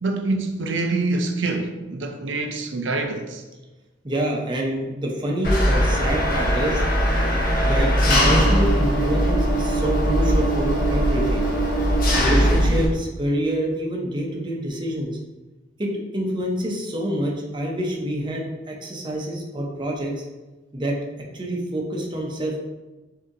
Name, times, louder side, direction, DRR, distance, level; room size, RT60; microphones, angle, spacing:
voice 1, 0.0-3.4, right 3 dB, 85° right, 0.5 m, -25 dB
voice 2, 4.0-6.8 7.6-11.5 12.1-15.2 15.8-20.1 20.7-21.0 21.3-22.6, right 1 dB, 25° right, 0.7 m, -27 dB
Engine, 5.4-12.9, equal, 50° left, 1.1 m, -20 dB
6.3 x 2.8 x 2.6 m
head